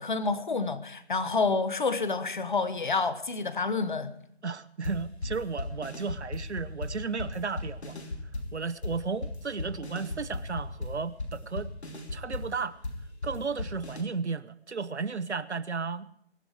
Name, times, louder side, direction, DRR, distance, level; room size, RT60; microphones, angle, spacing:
voice 1, 0.0-4.1, left 4 dB, 45° left, 1.3 m, -28 dB
voice 2, 4.4-8.0 8.5-11.7 12.1-12.8 13.2-16.0, right 4 dB, 80° right, 1.1 m, -34 dB
sound 1, 4.8-14.0, left 2 dB, 70° left, 3.2 m, -36 dB
22.5 x 9.6 x 4.9 m
figure-of-eight pair, 175°, 33 cm